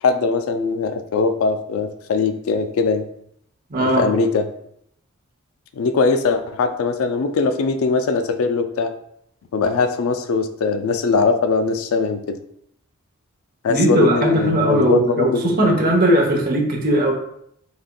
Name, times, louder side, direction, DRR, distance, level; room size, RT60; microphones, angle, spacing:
voice 1, 0.0-3.0 3.8-4.5 5.8-8.9 9.5-12.4 13.6-15.9, left 4 dB, 70° left, 8 dB, 0.4 m, -21 dB
voice 2, 3.7-4.0 13.7-17.1, right 1 dB, 45° right, -1 dB, 0.8 m, -18 dB
3.9 x 3.3 x 2.2 m, 0.72 s
head